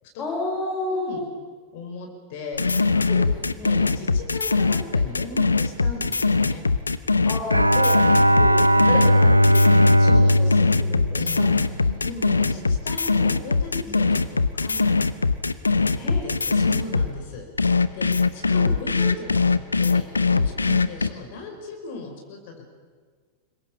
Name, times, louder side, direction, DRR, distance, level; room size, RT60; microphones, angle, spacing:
voice 1, 0.2-1.3 3.1-3.7 7.2-10.5 10.8-12.0 13.8-14.0 15.9-16.2 18.7-18.9, left 2 dB, 25° left, -2 dB, 5.7 m, -33 dB
voice 2, 0.9-1.2 1.7-3.0 3.6-6.6 9.8-10.7 11.1-15.0 15.7-22.7, left 3 dB, 50° left, 2 dB, 4.8 m, -38 dB
sound 1, 2.5-17.1 17.6-21.1, left 4 dB, 80° left, 0.8 m, -21 dB
Bowed string instrument, 7.5-11.9, equal, 85° right, 0.6 m, -18 dB
26.5 x 22.0 x 7.1 m, 1.5 s
figure-of-eight pair, 90°, 0 cm